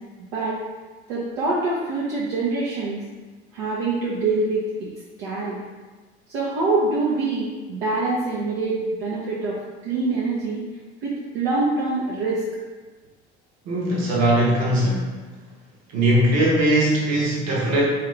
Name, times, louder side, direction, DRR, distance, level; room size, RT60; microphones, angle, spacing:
voice 1, 1.1-3.0 3.5-4.9 5.2-5.6 6.3-9.6 9.8-10.6 11.0-12.4, right 3 dB, 70° right, -7 dB, 1.0 m, -25 dB
voice 2, 13.6-15.1 15.9-17.9, right 1 dB, 50° right, -4 dB, 1.4 m, -20 dB
3.7 x 3.3 x 3.3 m, 1.3 s
hypercardioid pair, 70°, 33 cm